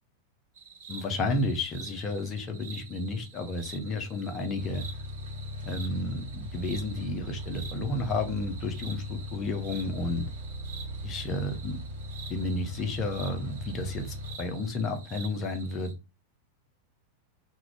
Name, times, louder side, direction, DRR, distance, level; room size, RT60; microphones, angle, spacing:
sound 1, 0.6-15.9, right 6 dB, 55° right, 0.5 m, -48 dB
voice 1, 0.9-4.8 5.6-10.3 11.0-11.8 12.3-15.9, left 2 dB, 30° left, 5 dB, 0.5 m, -32 dB
sound 2, 4.6-14.4, equal, 75° right, 1.2 m, -39 dB
2.3 x 2.1 x 3.2 m, 0.28 s
figure-of-eight pair, 90°, 0 cm